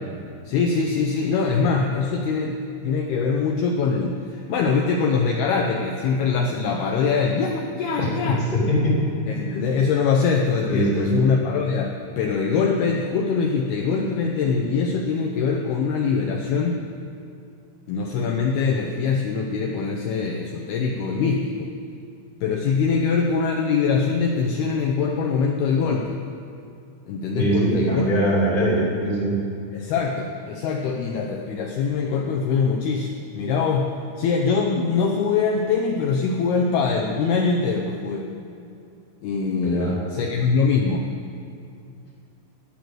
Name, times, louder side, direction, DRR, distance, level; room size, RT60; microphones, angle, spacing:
voice 1, 0.5-2.6 2.8-8.4 9.3-11.9 12.2-16.8 17.9-21.7 22.4-26.2 27.1-28.3 29.7-33.9 34.2-38.3 39.2-41.0, left 5 dB, 80° left, 1 dB, 2.4 m, -23 dB
voice 2, 8.0-9.0 10.7-11.1 27.3-29.4 39.6-40.0, equal, 15° left, -4 dB, 1.7 m, -22 dB
17.0 x 7.0 x 7.8 m, 2.6 s
omnidirectional pair, 5.4 m